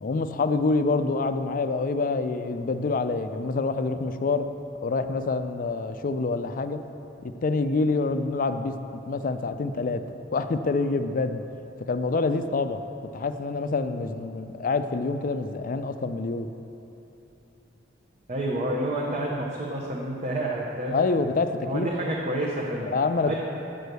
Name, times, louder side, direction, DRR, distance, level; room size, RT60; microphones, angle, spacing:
voice 1, 0.0-4.5 4.8-6.8 7.2-10.0 10.3-11.4 11.9-12.8 13.1-16.5 20.9-21.9 22.8-23.3, left 3 dB, 45° left, 9 dB, 0.4 m, -26 dB
voice 2, 18.3-21.0 21.7-22.9 23.2-23.3, right 1 dB, 40° right, -4 dB, 0.8 m, -29 dB
7.6 x 6.3 x 6.7 m, 2.9 s
head